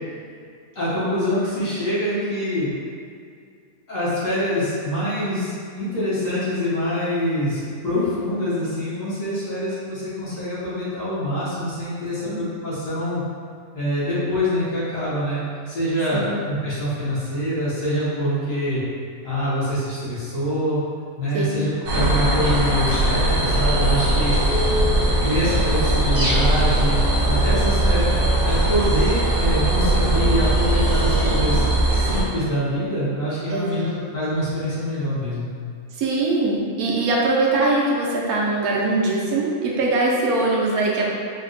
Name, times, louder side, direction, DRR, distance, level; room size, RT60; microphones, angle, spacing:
voice 1, 0.7-2.7 3.9-13.2 13.7-15.4 15.7-18.8 19.2-20.8 21.2-24.4 25.2-27.0 27.3-31.6 31.9-33.8 34.1-35.5, equal, 60° left, -10 dB, 1.3 m, -25 dB
sound 1, 21.9-32.2, right 1 dB, 55° right, 0.7 m, -20 dB
voice 2, 33.5-34.0 35.9-41.1, right 2 dB, 75° right, -3 dB, 1.0 m, -22 dB
4.0 x 2.2 x 2.5 m, 2.3 s
omnidirectional pair, 1.6 m